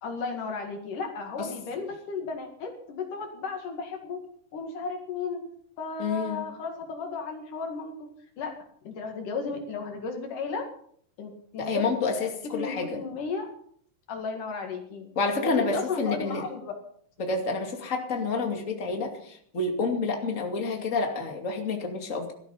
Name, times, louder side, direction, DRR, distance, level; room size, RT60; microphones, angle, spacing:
voice 1, 0.0-4.2 4.5-5.4 5.8-8.1 8.4-8.5 8.9-10.7 11.2-13.5 14.1-15.1 15.4-16.7, left 4 dB, 70° left, 3 dB, 3.6 m, -34 dB
voice 2, 6.0-6.4 11.6-13.0 15.2-16.4 17.2-22.3, left 3 dB, 25° left, 3 dB, 2.5 m, -29 dB
17.0 x 13.0 x 5.7 m, 0.62 s
omnidirectional pair, 3.8 m